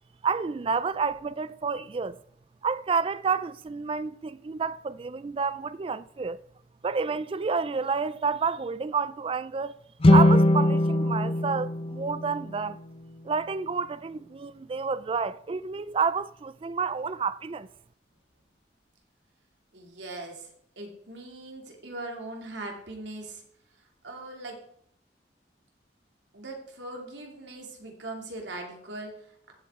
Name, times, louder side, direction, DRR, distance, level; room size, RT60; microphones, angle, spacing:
voice 1, 0.2-2.2 2.6-6.4 6.8-9.7 10.1-12.8 13.2-17.7, right 5 dB, 30° right, 0.3 m, -29 dB
sound 1, 10.0-13.3, left 1 dB, 35° left, 0.6 m, -22 dB
voice 2, 19.7-23.4 24.0-24.6 26.3-29.5, right 2 dB, 85° right, 2.6 m, -40 dB
15.0 x 7.7 x 3.6 m
head